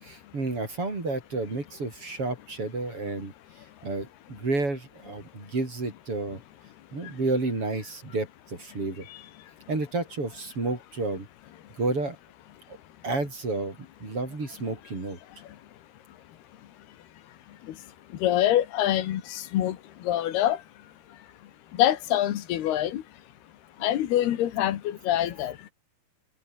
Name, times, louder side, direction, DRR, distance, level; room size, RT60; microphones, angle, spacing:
voice 1, 0.0-3.3 3.8-4.1 4.4-6.4 6.9-9.1 9.7-11.3 11.8-12.2 13.0-15.2, right 3 dB, 35° right, 6.9 m, -30 dB
voice 2, 18.2-19.8 20.1-20.6 21.8-23.0 23.8-25.7, left 12 dB, 85° left, 3.7 m, -25 dB
omnidirectional pair, 4.4 m